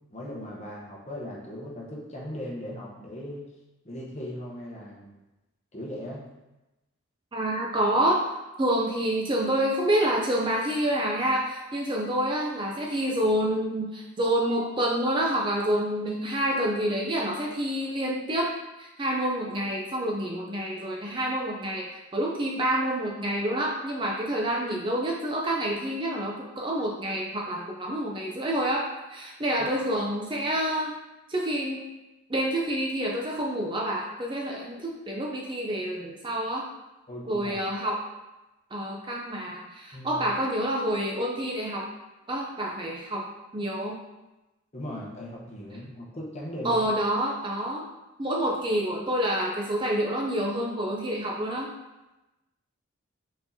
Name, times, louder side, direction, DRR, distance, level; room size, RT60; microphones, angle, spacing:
voice 1, 0.1-3.4 3.8-5.1 5.7-6.2 29.6-29.7 37.1-37.6 39.9-40.3 44.7-46.8, left 1 dB, 30° left, -4 dB, 0.9 m, -38 dB
voice 2, 7.3-8.3 8.6-18.5 18.8-30.9 31.3-31.9 32.3-36.7 37.3-38.0 38.7-41.9 42.3-43.2 43.5-44.0 46.6-47.9 48.2-51.7, right 1 dB, 25° right, -2 dB, 0.4 m, -28 dB
4.4 x 4.2 x 2.7 m, 1.0 s
head